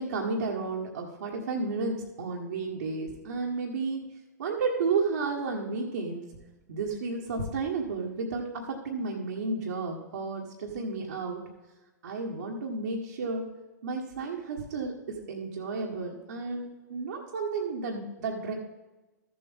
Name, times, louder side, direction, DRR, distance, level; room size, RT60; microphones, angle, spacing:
voice 1, 0.0-4.1 4.4-6.3 6.7-11.4 12.0-13.5 13.8-18.5, right 4 dB, 70° right, -2 dB, 1.5 m, -32 dB
13.5 x 7.7 x 3.7 m, 1.2 s
hypercardioid pair, 110°, 10 cm